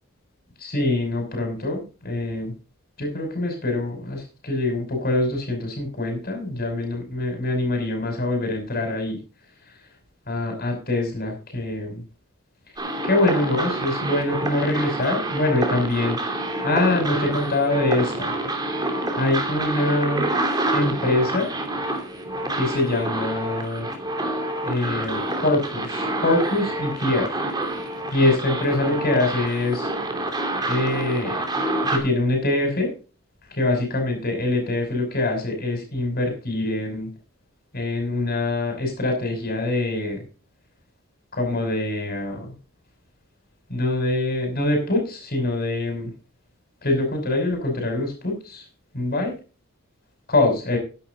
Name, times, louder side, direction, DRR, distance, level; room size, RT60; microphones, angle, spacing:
voice 1, 0.6-2.5 3.0-9.2 10.3-12.0 13.0-16.2 16.6-18.3 19.2-20.3 20.7-21.5 22.5-23.9 24.2-24.3 24.6-27.4 28.1-29.9 30.7-31.4 31.9-32.9 33.6-37.1 37.7-40.2 41.3-42.5 43.7-46.1 46.8-48.6 49.0-49.3 50.3-50.8, left 2 dB, 45° left, 3 dB, 5.5 m, -24 dB
sound 1, 12.8-32.0, right 1 dB, 20° right, 2.8 m, -27 dB
13.0 x 10.5 x 3.8 m, 0.34 s
head